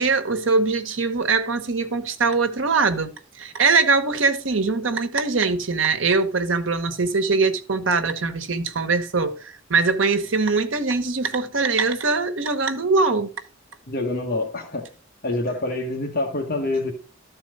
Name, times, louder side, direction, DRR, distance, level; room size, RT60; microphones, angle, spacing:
voice 1, 0.0-3.1 3.4-13.3, right 4 dB, 75° right, 1.2 m, -22 dB
voice 2, 13.9-14.8 15.2-16.9, left 2 dB, 50° left, 1.5 m, -26 dB
13.0 x 4.3 x 5.4 m
head